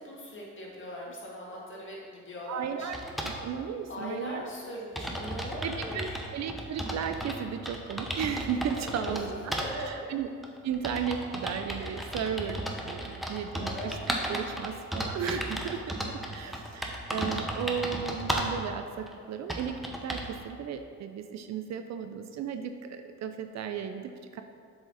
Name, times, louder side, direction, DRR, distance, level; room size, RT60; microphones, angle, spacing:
voice 1, 0.0-3.0 3.9-6.2 8.8-9.2 9.5-10.2 13.6-14.0, equal, 40° left, -3 dB, 1.8 m, -40 dB
voice 2, 2.5-3.0 3.2-4.4 5.6-9.3 9.9-10.3 10.6-14.0 14.3-24.4, right 7 dB, 60° right, 7 dB, 0.5 m, -35 dB
sound 1, 2.9-3.4 4.3-4.4 4.6-4.7 5.0-7.4 7.7-9.2 9.5-9.7 10.4-18.6 19.1-19.2 19.5-20.3, equal, ahead, 0.8 m, -34 dB
7.4 x 4.9 x 4.0 m, 2.2 s
cardioid pair, 90°, 30 cm